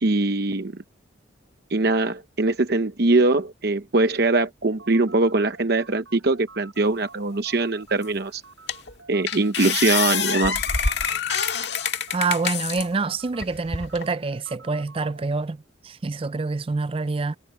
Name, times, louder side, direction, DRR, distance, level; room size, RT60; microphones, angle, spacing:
voice 1, 0.0-0.7 1.7-8.4 9.1-10.6, right 2 dB, 55° right, 0.8 m, -22 dB
sound 1, 4.6-15.3, right 4 dB, 80° right, 6.1 m, -48 dB
sound 2, 8.0-8.1 8.7-8.9 9.3-12.9 13.4-14.1, left 6 dB, 60° left, 1.8 m, -26 dB
voice 2, 12.1-17.4, right 3 dB, 30° right, 0.4 m, -26 dB
head